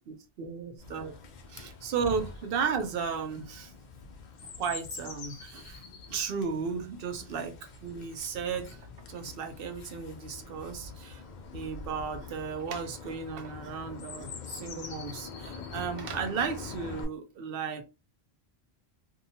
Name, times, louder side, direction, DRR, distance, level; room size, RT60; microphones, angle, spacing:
voice 1, 0.1-1.2 1.5-3.7 4.4-5.8 6.1-7.5 7.8-11.2 11.5-17.8, right 6 dB, 65° right, 0.8 m, -35 dB
Chirp tweet, 0.8-17.0, left 4 dB, 55° left, 0.6 m, -44 dB
2.7 x 2.3 x 2.7 m
omnidirectional pair, 1.1 m